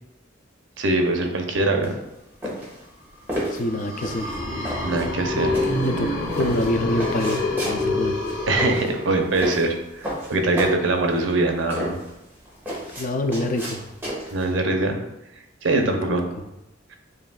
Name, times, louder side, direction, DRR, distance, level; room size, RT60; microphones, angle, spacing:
voice 1, 0.8-1.9 4.8-5.6 8.5-12.0 14.3-15.0 15.6-16.2, right 2 dB, 80° right, 4 dB, 0.7 m, -22 dB
sound 1, 1.8-14.5, equal, 10° right, 1.5 m, -32 dB
voice 2, 3.5-4.3 5.8-6.1 6.3-8.2 13.0-13.8 15.9-16.1, left 1 dB, 45° left, 6 dB, 0.4 m, -26 dB
sound 2, 3.6-9.5, left 2 dB, 80° left, 1.4 m, -27 dB
7.6 x 2.6 x 2.3 m, 0.91 s
head